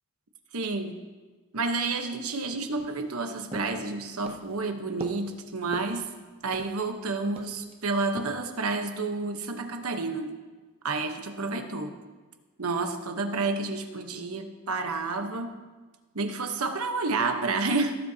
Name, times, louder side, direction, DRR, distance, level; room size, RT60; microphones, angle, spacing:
voice 1, 0.5-0.9 1.5-6.1 6.4-10.3 10.8-12.0 12.6-15.5 16.1-18.0, right 3 dB, 85° right, 6 dB, 1.0 m, -30 dB
sound 1, 2.8-7.0 7.4-7.8 8.2-8.4, right 2 dB, 25° right, 0.7 m, -42 dB
17.0 x 7.7 x 2.8 m, 1.3 s
head